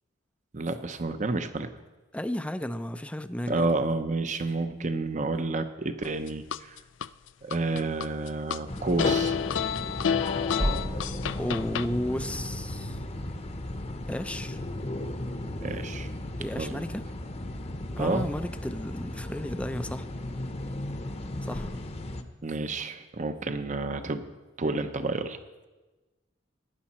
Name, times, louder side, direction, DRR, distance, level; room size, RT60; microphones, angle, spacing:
voice 1, 0.5-1.7 3.5-6.8 7.4-9.4 15.6-16.1 16.6-16.8 18.0-18.3 22.4-24.2 24.6-25.4, right 2 dB, 40° right, 9 dB, 0.8 m, -30 dB
voice 2, 2.1-3.7 11.4-13.0 14.1-14.6 16.4-17.0 18.0-20.1 21.4-21.7, left 1 dB, 5° left, 11 dB, 0.5 m, -33 dB
sound 1, 6.0-7.1 7.5-8.6 9.0-11.9, left 7 dB, 85° left, 0.4 m, -29 dB
sound 2, 8.7-22.2, left 1 dB, 35° left, 0.9 m, -35 dB
sound 3, 10.6-15.3, equal, 15° right, 1.0 m, -37 dB
18.0 x 10.0 x 4.3 m, 1.2 s
head